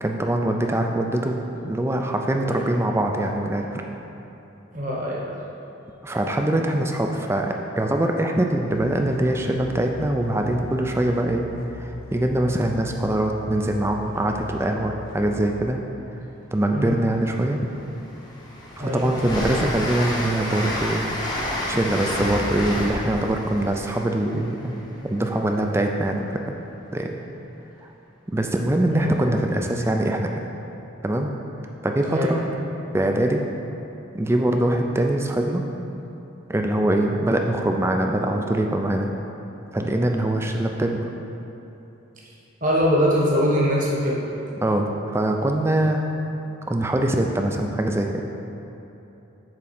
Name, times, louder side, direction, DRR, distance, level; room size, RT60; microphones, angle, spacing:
voice 1, 0.0-1.4 1.6-3.8 6.0-11.5 11.7-15.8 16.5-17.6 18.8-26.4 26.9-27.2 27.8-27.9 28.3-30.3 31.0-31.3 31.8-32.5 32.9-33.4 34.1-35.6 36.5-39.1 39.7-41.0 44.6-46.0 46.7-48.3, right 1 dB, 10° right, 3 dB, 0.4 m, -23 dB
voice 2, 4.7-5.2 10.4-10.5 16.7-16.9 18.8-19.1 22.2-22.3 28.9-29.1 32.1-32.7 42.6-44.2, equal, 40° right, -4 dB, 1.2 m, -23 dB
sound 1, 8.7-15.6, left 2 dB, 90° left, 0.7 m, -41 dB
Train, 17.1-17.2 17.7-25.4, left 1 dB, 20° left, 0.8 m, -30 dB
7.7 x 3.7 x 5.8 m, 3.0 s
head